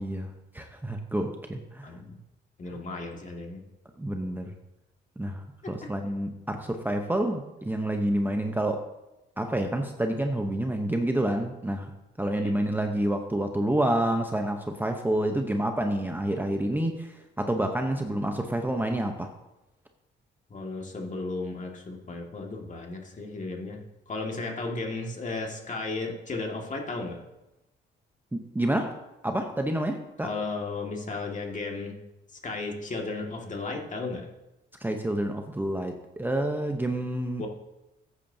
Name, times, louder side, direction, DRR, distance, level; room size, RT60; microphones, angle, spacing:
voice 1, 0.0-1.9 2.7-2.8 4.0-4.5 5.2-8.8 9.4-11.9 12.2-19.3 28.3-28.9 29.2-30.4 34.8-37.4, right 1 dB, 10° right, 4 dB, 0.8 m, -28 dB
voice 2, 1.8-2.2 2.6-3.6 5.6-5.9 12.4-12.5 20.5-23.8 24.1-27.2 30.2-31.9 32.4-34.3 37.4-37.5, left 3 dB, 40° left, 1 dB, 2.0 m, -34 dB
14.0 x 8.8 x 2.8 m, 0.97 s
cardioid pair, 90°, 20 cm